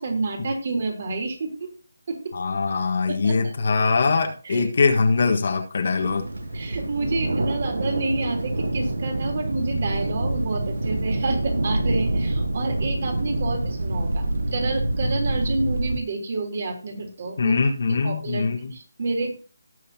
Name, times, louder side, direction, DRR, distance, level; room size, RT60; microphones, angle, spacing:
voice 1, 0.0-1.7 2.1-2.4 3.1-3.5 4.4-4.6 6.5-17.5 18.0-19.3, right 3 dB, 45° right, 2 dB, 3.7 m, -29 dB
voice 2, 2.3-6.2 13.4-13.6 17.4-18.7, left 4 dB, 55° left, 3 dB, 1.5 m, -22 dB
sound 1, 6.0-16.0, right 1 dB, 80° right, 1.4 m, -26 dB
18.0 x 6.5 x 2.9 m, 0.37 s
figure-of-eight pair, 165°, 0 cm